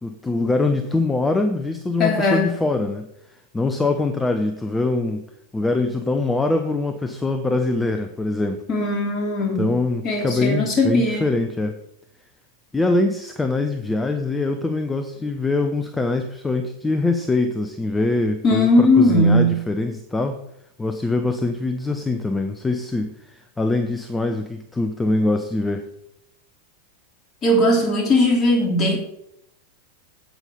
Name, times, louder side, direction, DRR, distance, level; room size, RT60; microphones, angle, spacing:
voice 1, 0.0-5.3 5.5-8.6 9.6-11.8 12.7-20.4 20.8-25.9, left 2 dB, 10° left, 6 dB, 0.9 m, -23 dB
voice 2, 2.0-2.5 8.7-9.7 10.0-11.4 18.4-19.6 27.4-29.0, left 1 dB, 30° left, 1 dB, 3.0 m, -18 dB
9.1 x 8.4 x 5.3 m, 0.77 s
figure-of-eight pair, 90°, 0 cm